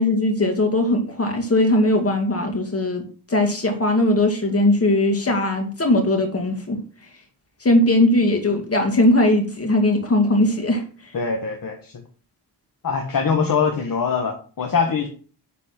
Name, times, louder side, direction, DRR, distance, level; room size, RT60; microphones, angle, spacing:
voice 1, 0.0-3.0 3.3-6.8 7.6-10.8, left 1 dB, 35° left, 3 dB, 2.2 m, -19 dB
voice 2, 11.1-11.9 12.8-15.1, left 5 dB, 50° left, 3 dB, 1.2 m, -23 dB
9.9 x 4.1 x 5.9 m, 0.40 s
wide cardioid pair, 135°, 43 cm